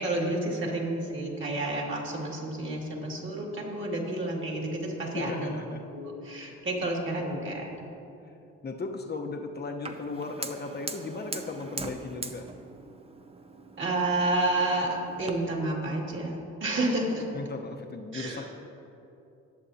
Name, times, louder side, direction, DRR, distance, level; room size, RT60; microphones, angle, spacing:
voice 1, 0.0-5.5 5.9-7.9 13.8-17.3 18.1-18.5, right 2 dB, 40° right, -1 dB, 2.3 m, -30 dB
voice 2, 5.1-5.9 6.3-6.7 8.6-12.5 17.3-18.5, left 3 dB, 35° left, 4 dB, 1.0 m, -36 dB
Fire, 9.9-15.3, right 3 dB, 20° right, 0.6 m, -41 dB
19.5 x 7.0 x 2.8 m, 2.8 s
cardioid pair, 90°, 30 cm